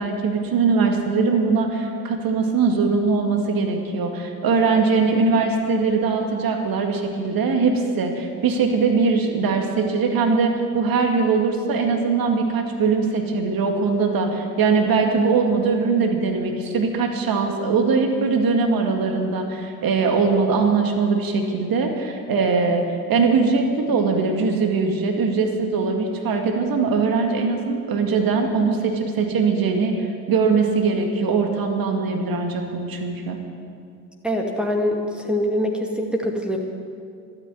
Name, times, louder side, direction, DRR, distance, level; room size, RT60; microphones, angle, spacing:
voice 1, 0.0-22.8 23.1-33.4, right 4 dB, 50° right, 3 dB, 2.2 m, -21 dB
voice 2, 34.2-36.6, equal, ahead, 0 dB, 2.2 m, -24 dB
12.5 x 9.9 x 9.4 m, 2.3 s
hypercardioid pair, 55°, 44 cm